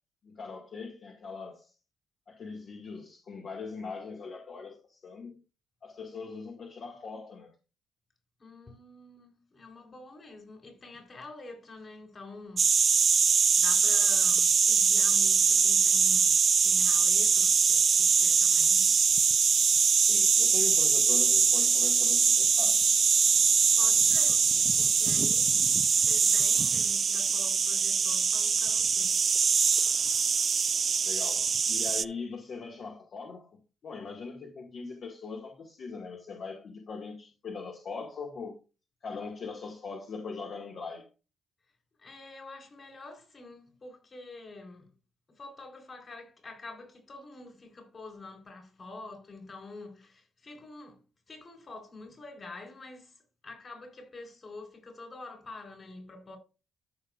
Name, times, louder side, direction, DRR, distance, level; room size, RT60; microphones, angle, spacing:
voice 1, 0.2-1.7 2.3-5.3 5.8-7.5 20.0-22.8 31.0-33.5 33.8-38.6 39.0-41.1, left 4 dB, 55° left, 2.1 m, -41 dB
voice 2, 8.4-12.7 13.2-19.0 23.7-29.2 42.0-44.9 45.3-51.0 51.3-56.4, left 3 dB, 35° left, 4.3 m, -47 dB
sound 1, 12.6-32.0, right 6 dB, 45° right, 0.4 m, -23 dB
14.0 x 5.4 x 2.6 m
cardioid pair, 90°, 0 cm